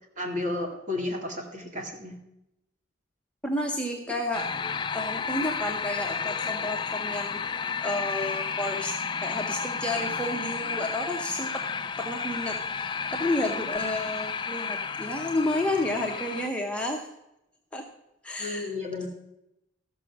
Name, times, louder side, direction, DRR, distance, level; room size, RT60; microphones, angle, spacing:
voice 1, 0.2-2.2 18.4-19.1, left 2 dB, 35° right, 0 dB, 2.1 m, -32 dB
voice 2, 3.4-4.5 4.9-7.4 7.8-8.9 9.2-11.6 12.0-17.1 17.7-17.8 18.2-18.7, left 1 dB, 5° left, 1 dB, 0.8 m, -31 dB
sound 1, 4.3-16.5, left 5 dB, 25° left, 0.3 m, -32 dB
13.5 x 6.1 x 6.0 m, 0.85 s
head